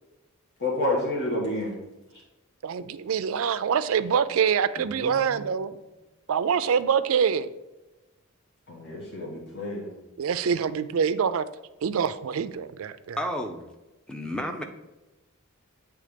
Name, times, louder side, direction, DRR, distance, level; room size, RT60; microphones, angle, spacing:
voice 1, 0.6-1.8 8.7-9.9, left 1 dB, 50° left, -4 dB, 1.6 m, -29 dB
voice 2, 2.6-5.7 6.3-7.5 10.2-11.5 11.8-13.2, right 7 dB, 65° right, 13 dB, 0.4 m, -25 dB
voice 3, 4.8-5.5 13.2-13.7 14.1-14.6, equal, 5° left, 4 dB, 0.6 m, -33 dB
7.8 x 3.4 x 5.1 m, 1.1 s
head